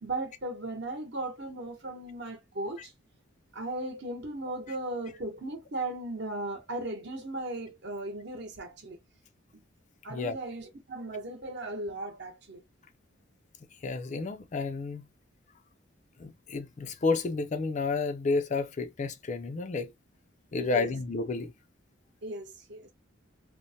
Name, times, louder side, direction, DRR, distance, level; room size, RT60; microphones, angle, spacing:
voice 1, 0.0-2.9 3.5-9.0 9.5-9.6 10.0-12.6 20.6-20.9 22.2-22.9, right 2 dB, 55° right, 0.9 m, -37 dB
voice 2, 13.8-15.1 16.2-19.9 20.5-21.5, left 3 dB, 35° left, 0.4 m, -31 dB
3.0 x 2.0 x 2.7 m
head